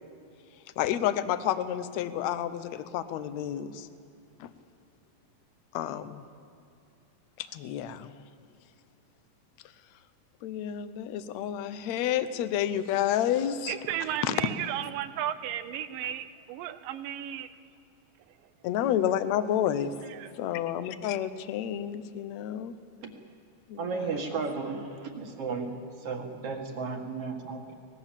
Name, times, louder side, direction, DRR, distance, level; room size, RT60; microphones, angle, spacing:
voice 1, 0.8-3.9 4.4-4.5 5.7-6.2 7.4-8.2 10.4-13.8 14.2-14.4 18.6-19.9 20.3-22.7 23.7-24.2, left 10 dB, 70° left, 12 dB, 1.8 m, -30 dB
voice 2, 13.7-17.5 20.1-20.3, right 11 dB, 85° right, 12 dB, 2.5 m, -34 dB
voice 3, 23.8-27.7, right 4 dB, 50° right, 4 dB, 2.4 m, -34 dB
24.0 x 19.5 x 7.4 m, 2.6 s
omnidirectional pair, 3.8 m